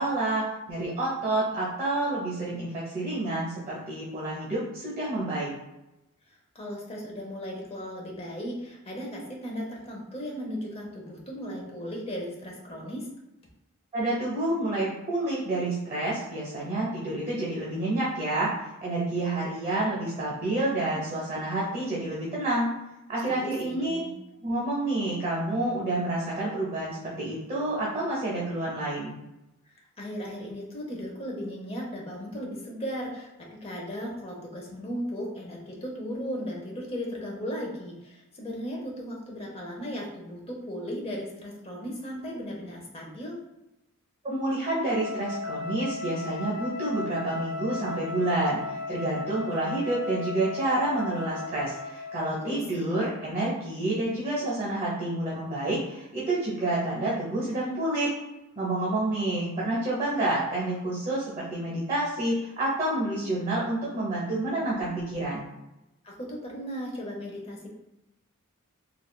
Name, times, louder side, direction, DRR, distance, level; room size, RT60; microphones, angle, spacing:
voice 1, 0.0-5.5 13.9-18.5 18.8-22.7 23.1-24.0 24.4-29.2 44.2-48.6 48.9-58.1 58.5-65.5, right 2 dB, 25° right, -6 dB, 0.8 m, -29 dB
voice 2, 6.5-13.1 23.3-24.1 30.0-33.3 33.6-43.4 52.4-53.1 66.0-67.7, equal, 25° left, -2 dB, 0.6 m, -36 dB
Wind instrument woodwind instrument, 44.8-52.4, left 3 dB, 80° left, 0.8 m, -36 dB
3.3 x 2.4 x 2.2 m, 0.93 s
head